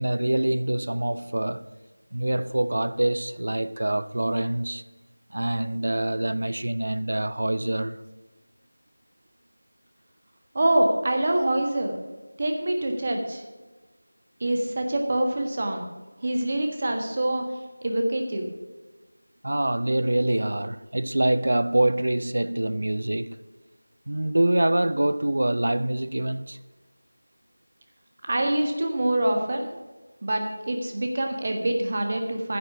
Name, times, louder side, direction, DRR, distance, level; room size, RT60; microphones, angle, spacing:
voice 1, 0.0-1.6 2.1-4.8 5.3-8.0 19.4-23.4 24.1-26.6, right 1 dB, 50° right, 0.5 m, -25 dB
voice 2, 10.5-11.9 12.4-13.4 14.4-15.9 16.2-17.4 17.8-18.5 28.3-29.7 30.2-32.6, right 1 dB, 30° right, 1.5 m, -25 dB
10.0 x 8.1 x 7.1 m
figure-of-eight pair, 170°, 0 cm